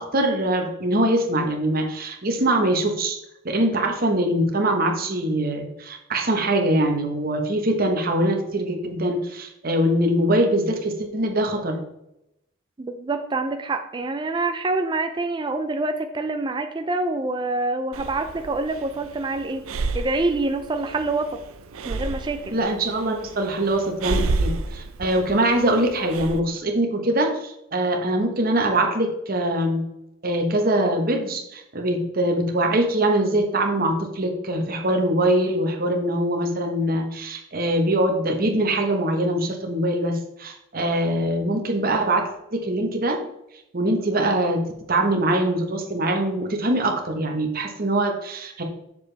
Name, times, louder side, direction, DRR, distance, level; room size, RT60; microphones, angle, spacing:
voice 1, 0.0-3.2 3.4-11.8 22.5-29.8 30.2-43.2 43.7-48.6, right 1 dB, 45° right, 3 dB, 1.2 m, -23 dB
voice 2, 12.8-19.6 19.9-21.4 21.9-22.5, right 2 dB, 20° right, 6 dB, 0.4 m, -26 dB
Breathing, 17.9-26.4, right 3 dB, 85° right, 0.6 m, -31 dB
7.0 x 6.6 x 3.4 m, 0.84 s
head